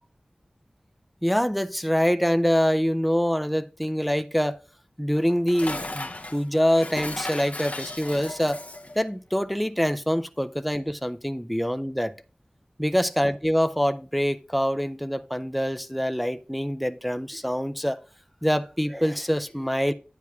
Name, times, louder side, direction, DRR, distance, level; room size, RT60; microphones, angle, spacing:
voice 1, 1.2-4.6 5.0-8.6 9.0-12.1 12.8-18.0 18.4-19.9, equal, ahead, 0.4 m, -25 dB
Dishes pots and pans, 5.2-9.0, left 2 dB, 50° left, 0.7 m, -36 dB
9.4 x 9.3 x 2.4 m
wide cardioid pair, 50°, 3 cm